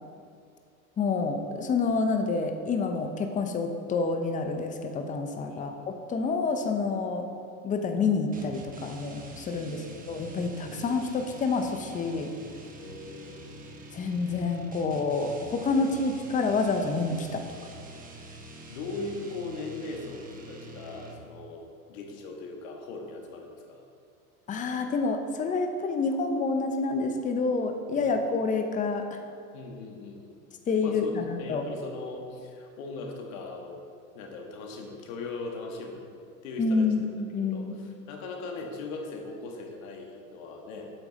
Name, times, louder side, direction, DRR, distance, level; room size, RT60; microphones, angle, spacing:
voice 1, 1.0-5.7 6.1-7.3 7.6-12.3 13.9-17.5 24.5-29.2 30.7-31.6 36.6-37.7, left 4 dB, 20° left, 5 dB, 0.7 m, -28 dB
sound 1, 8.3-21.4, right 2 dB, 20° right, 1.1 m, -46 dB
voice 2, 9.6-10.8 12.8-13.5 15.7-16.0 18.7-23.8 27.9-28.1 29.5-30.4 30.8-33.8 34.1-36.0 36.4-36.9 37.3-40.9, left 3 dB, 65° left, 1 dB, 1.7 m, -40 dB
8.9 x 7.1 x 4.0 m, 2.4 s
supercardioid pair, 115°, 44 cm